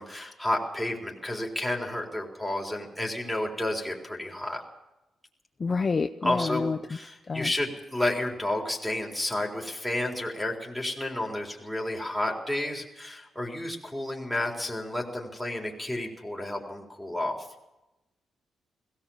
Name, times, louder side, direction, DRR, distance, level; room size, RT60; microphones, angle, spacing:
voice 1, 0.0-4.6 6.2-17.5, left 1 dB, ahead, -2 dB, 4.1 m, -31 dB
voice 2, 5.6-6.8 7.3-7.5, left 4 dB, 30° left, 8 dB, 0.6 m, -28 dB
21.5 x 18.0 x 7.3 m, 0.94 s
wide cardioid pair, 160°, 0 cm